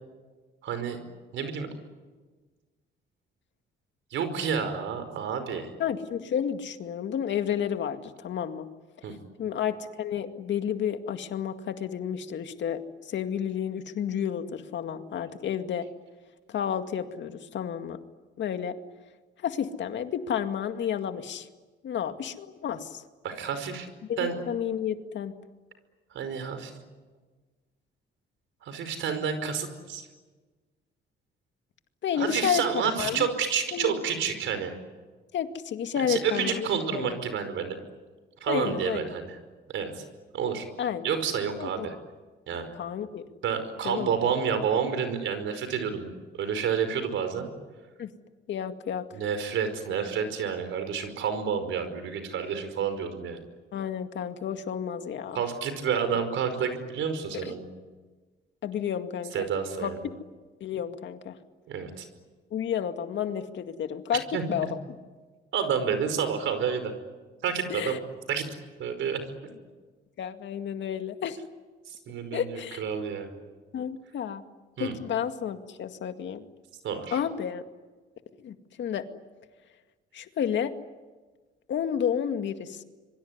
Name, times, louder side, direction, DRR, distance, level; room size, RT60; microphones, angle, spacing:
voice 1, 0.6-1.0 1.3-1.7 4.1-5.7 9.0-9.1 23.2-23.9 24.2-24.4 26.1-26.7 28.6-30.1 32.1-34.7 36.0-37.8 38.4-39.4 39.7-40.0 40.3-40.6 41.0-41.9 42.5-42.7 43.4-46.1 46.4-47.5 49.1-53.4 55.3-57.7 59.3-60.0 61.7-62.1 64.3-64.4 65.5-66.9 67.4-68.0 68.3-68.4 68.8-69.2 71.9-73.3 74.8-74.9 76.8-77.2, right 7 dB, 75° right, 9 dB, 5.2 m, -29 dB
voice 2, 5.8-8.7 9.4-15.9 16.5-18.0 18.4-18.8 19.4-21.5 21.8-23.0 24.1-25.3 32.0-32.6 33.0-33.3 33.7-34.0 35.3-37.2 38.5-39.1 40.8-41.1 41.6-41.9 42.7-43.3 43.8-44.2 48.0-48.1 48.5-49.0 53.7-55.4 56.1-56.2 57.4-57.5 58.6-59.3 59.8-60.2 60.6-61.4 62.5-64.8 67.7-68.0 70.2-71.4 72.3-72.8 73.7-74.4 74.8-76.4 77.1-77.6 78.4-79.0 80.1-80.7 81.7-82.8, left 8 dB, 70° left, 7 dB, 2.1 m, -31 dB
26.0 x 23.5 x 9.6 m, 1.3 s
cardioid pair, 90°, 20 cm